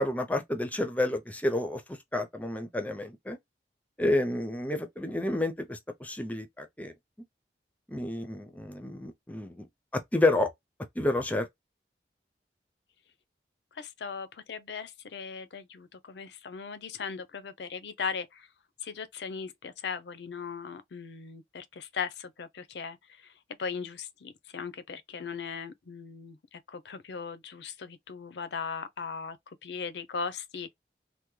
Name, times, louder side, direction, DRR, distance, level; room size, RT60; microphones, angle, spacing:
voice 1, 0.0-3.4 4.0-6.9 7.9-9.7 10.1-10.5 11.0-11.5, left 1 dB, 10° left, 0.4 m, -30 dB
voice 2, 13.7-18.5 18.8-23.3 23.6-30.7, left 5 dB, 80° left, 0.5 m, -38 dB
3.4 x 2.1 x 3.1 m
head